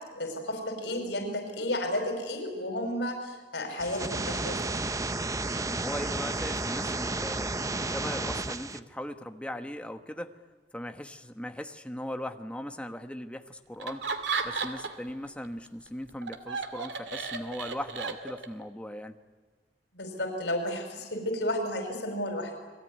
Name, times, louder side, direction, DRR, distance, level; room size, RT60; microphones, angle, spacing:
voice 1, 0.2-4.8 19.9-22.6, left 1 dB, 85° left, 4 dB, 5.0 m, -32 dB
sound 1, 3.8-8.8, right 2 dB, 20° right, 0.8 m, -32 dB
voice 2, 5.5-7.5 7.9-10.3 10.7-14.1 14.4-19.2, left 1 dB, 5° left, 6 dB, 1.4 m, -39 dB
Laughter, 13.8-15.1 15.4-18.6, right 4 dB, 90° right, 2.3 m, -34 dB
29.0 x 21.0 x 9.6 m, 1.4 s
head